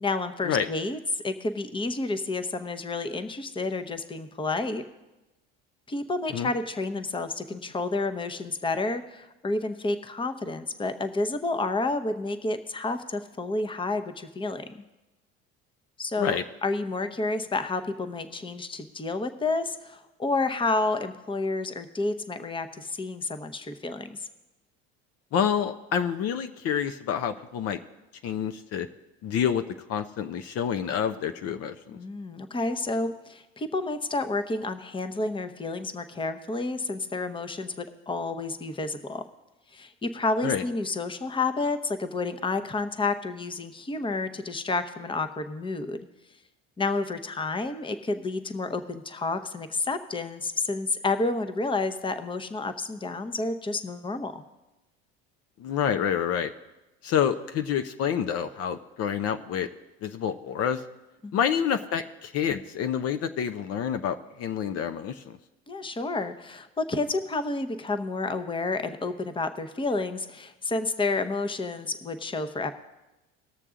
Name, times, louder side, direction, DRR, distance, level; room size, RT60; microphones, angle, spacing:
voice 1, 0.0-4.8 5.9-14.7 16.0-24.2 31.9-39.2 39.7-46.0 46.8-54.4 61.2-61.4 65.7-72.7, left 3 dB, 15° left, 9 dB, 0.9 m, -30 dB
voice 2, 25.3-27.8 28.2-28.9 29.2-29.6 29.9-32.0 40.4-40.6 55.6-56.5 57.0-59.7 60.0-60.8 61.3-65.4, left 8 dB, 55° left, 8 dB, 0.7 m, -28 dB
19.0 x 6.7 x 3.7 m, 1.0 s
supercardioid pair, 90°, 30 cm